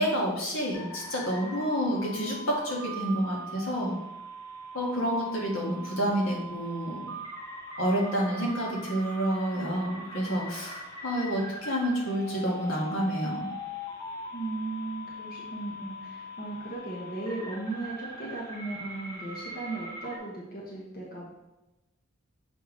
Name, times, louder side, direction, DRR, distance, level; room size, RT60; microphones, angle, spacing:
voice 1, 0.0-3.9 4.7-7.0 7.8-13.5, equal, 70° left, -3 dB, 1.8 m, -29 dB
sound 1, 0.7-20.2, equal, 20° left, 1.9 m, -41 dB
voice 2, 14.3-21.3, right 2 dB, 45° left, -4 dB, 1.3 m, -37 dB
7.0 x 5.7 x 3.2 m, 0.99 s
head